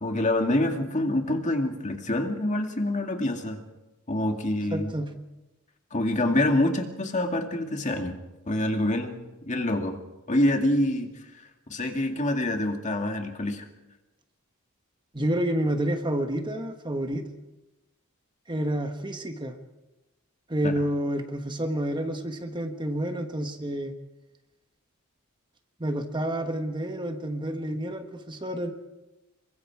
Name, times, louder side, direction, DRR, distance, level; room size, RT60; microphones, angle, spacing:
voice 1, 0.0-3.6 4.1-4.9 5.9-8.2 8.5-10.0 10.3-11.4 11.7-13.6 20.6-20.7, left 1 dB, 35° left, 4 dB, 2.3 m, -26 dB
voice 2, 4.7-5.1 15.1-17.2 18.5-19.5 20.5-23.9 25.8-28.7, right 1 dB, 20° right, 6 dB, 1.4 m, -29 dB
27.5 x 23.5 x 4.8 m, 1.0 s
head